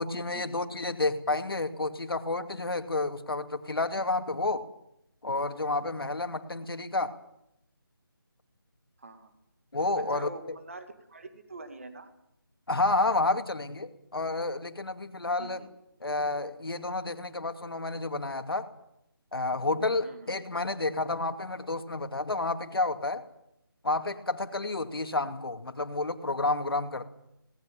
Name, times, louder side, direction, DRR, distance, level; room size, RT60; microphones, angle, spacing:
voice 1, 0.0-4.7 5.2-7.2 9.7-10.3 12.7-15.6 16.0-18.7 19.3-23.2 23.8-27.0, left 2 dB, 75° left, 7 dB, 2.5 m, -30 dB
voice 2, 9.0-9.3 9.9-12.1 15.4-15.7 20.0-20.3, right 3 dB, 35° right, 8 dB, 2.1 m, -44 dB
19.0 x 17.5 x 9.2 m, 0.81 s
figure-of-eight pair, 180°, 12 cm